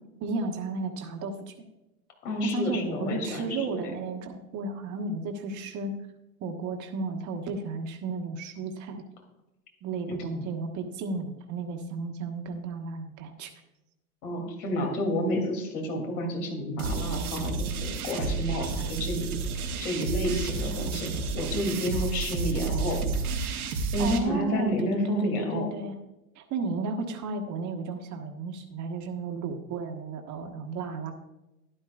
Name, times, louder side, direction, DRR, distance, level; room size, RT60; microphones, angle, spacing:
voice 1, 0.2-1.5 2.4-6.0 6.4-9.0 9.8-13.5 24.0-25.9 26.3-31.1, right 3 dB, 40° right, 3 dB, 1.4 m, -33 dB
voice 2, 2.2-3.9 10.3-10.5 14.2-19.4 19.8-21.1 21.3-23.2 23.9-25.7, left 1 dB, 75° left, 2 dB, 2.9 m, -30 dB
sound 1, 16.8-24.2, right 4 dB, 80° right, 1.7 m, -31 dB
12.0 x 11.0 x 2.4 m, 0.97 s
hypercardioid pair, 90°, 44 cm